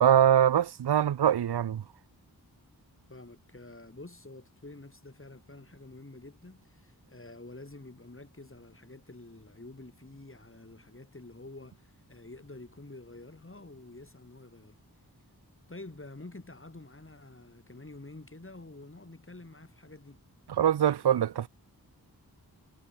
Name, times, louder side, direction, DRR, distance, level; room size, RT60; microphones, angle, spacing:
voice 1, 0.0-1.8 20.6-21.5, right 10 dB, 85° right, 0.6 m, -23 dB
voice 2, 3.1-14.8 15.7-20.2, left 2 dB, 35° left, 5.3 m, -48 dB
wide cardioid pair, 60°, 38 cm